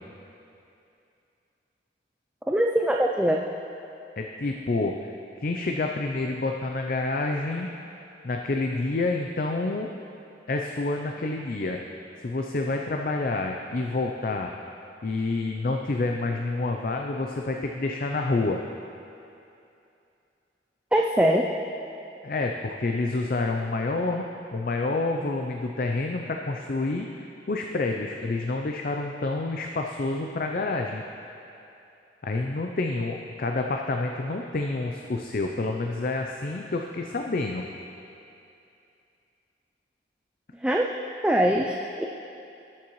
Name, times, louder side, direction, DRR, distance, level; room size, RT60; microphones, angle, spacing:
voice 1, 2.5-3.4 20.9-21.5 40.6-40.9 41.2-42.1, equal, 5° right, 0 dB, 0.3 m, -22 dB
voice 2, 4.2-5.1 5.4-7.7 8.2-10.0 10.5-11.8 12.2-14.5 15.0-18.6 22.2-27.1 27.5-31.0 32.2-37.7, left 2 dB, 50° left, 2 dB, 0.5 m, -28 dB
19.5 x 7.4 x 3.1 m, 2.7 s
head